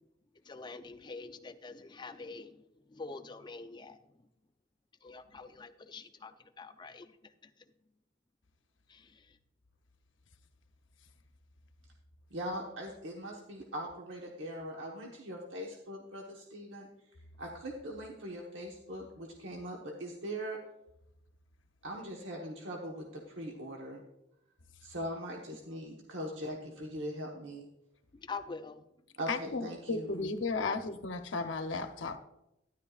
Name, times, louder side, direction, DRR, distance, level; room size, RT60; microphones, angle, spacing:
voice 1, 0.4-4.3 5.0-7.5 8.9-9.4 28.1-28.8 30.6-30.8, left 4 dB, 25° left, 9 dB, 0.5 m, -46 dB
voice 2, 12.3-16.9 17.4-20.6 21.8-24.0 24.8-27.7 29.2-30.1, equal, 75° right, -1 dB, 1.2 m, -41 dB
voice 3, 29.3-32.2, left 3 dB, 75° left, 8 dB, 0.8 m, -34 dB
12.5 x 10.5 x 2.4 m, 0.86 s
head